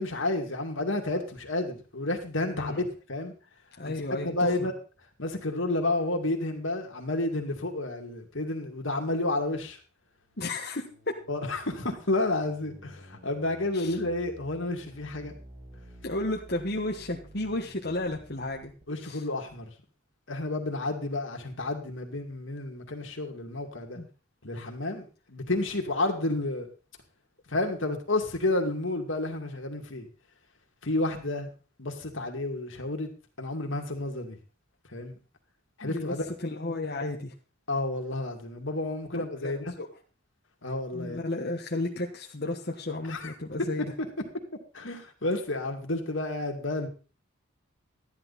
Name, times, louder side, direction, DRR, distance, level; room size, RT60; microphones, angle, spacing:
voice 1, 0.0-2.8 3.1-3.3 3.8-3.9 4.2-4.7 5.2-9.8 11.3-15.3 18.9-19.7 20.3-24.0 24.4-26.7 27.5-30.1 30.8-31.5 31.8-33.1 33.4-34.4 34.9-35.1 35.8-36.3 37.7-39.7 40.6-41.2 43.1-43.3 43.8-43.9 44.7-46.9, left 2 dB, 65° left, 3 dB, 2.3 m, -30 dB
voice 2, 2.5-2.9 3.8-4.7 10.4-11.1 13.7-14.0 16.0-18.7 19.0-19.2 23.9-24.1 35.8-37.3 39.1-39.9 40.9-43.9, left 2 dB, 50° left, 0 dB, 1.4 m, -33 dB
sound 1, 10.1-18.8, equal, 30° right, 5.3 m, -52 dB
13.5 x 10.5 x 4.2 m, 0.35 s
head